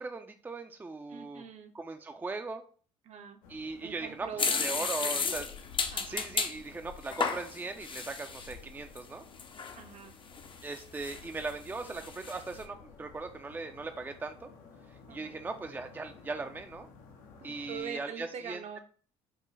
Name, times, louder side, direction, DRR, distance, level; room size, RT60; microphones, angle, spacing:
voice 1, 0.0-1.4 1.7-2.6 3.5-4.3 4.6-5.5 6.1-9.2 10.6-14.5 15.1-16.9 17.4-18.8, right 3 dB, 15° right, 6 dB, 0.4 m, -39 dB
voice 2, 1.1-1.7 3.0-3.4 3.8-5.3 5.9-6.3 9.7-10.1 15.1-15.4 17.4-18.8, right 6 dB, 50° right, 6 dB, 0.7 m, -44 dB
sound 1, 3.4-17.8, left 5 dB, 70° left, 0.7 m, -53 dB
sound 2, 4.4-6.6 7.0-8.5 9.0-9.1 9.4-9.8 10.3-11.5 11.8-12.4, left 5 dB, 35° left, 0.6 m, -33 dB
4.5 x 2.3 x 3.2 m, 0.42 s
hypercardioid pair, 60°, 15 cm